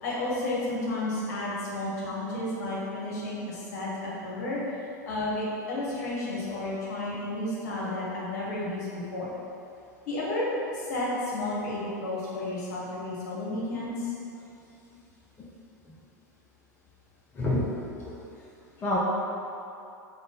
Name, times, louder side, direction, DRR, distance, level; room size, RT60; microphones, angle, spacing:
voice 1, 0.0-4.6 5.1-9.3 10.1-14.1, left 2 dB, 60° left, -6 dB, 1.0 m, -32 dB
voice 2, 17.3-18.1 18.8-19.0, left 1 dB, 20° left, -5 dB, 0.5 m, -28 dB
3.6 x 2.1 x 3.8 m, 2.7 s
figure-of-eight pair, 85°, 10 cm